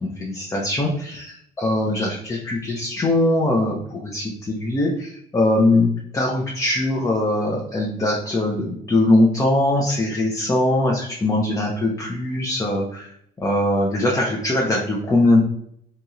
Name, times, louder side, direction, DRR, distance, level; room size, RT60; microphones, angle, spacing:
voice 1, 0.0-13.1 13.4-15.5, left 1 dB, 20° left, -2 dB, 0.5 m, -21 dB
2.8 x 2.8 x 2.4 m, 0.69 s
cardioid pair, 110°, 17 cm